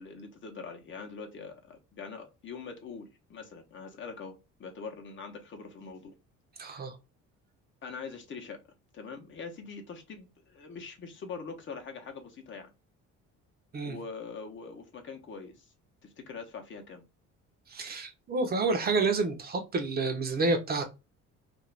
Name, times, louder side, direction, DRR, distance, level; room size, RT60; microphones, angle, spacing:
voice 1, 0.0-6.1 6.6-6.8 7.8-8.6 8.9-12.7 13.8-15.7 16.0-17.0, left 5 dB, 40° left, 0.8 m, -43 dB
voice 2, 6.6-6.9 13.7-14.0 17.7-20.8, right 3 dB, 30° right, 0.6 m, -29 dB
2.5 x 2.4 x 3.1 m
cardioid pair, 120°, 31 cm